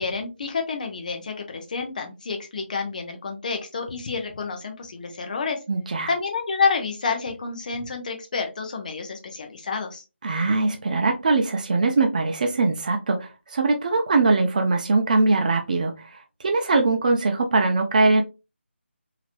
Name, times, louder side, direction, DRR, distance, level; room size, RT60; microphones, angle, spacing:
voice 1, 0.0-5.6 6.1-10.0, left 4 dB, 40° left, 0.7 m, -29 dB
voice 2, 5.7-6.1 10.2-18.2, right 3 dB, 40° right, 0.6 m, -22 dB
3.0 x 2.9 x 2.4 m
figure-of-eight pair, 160°, 7 cm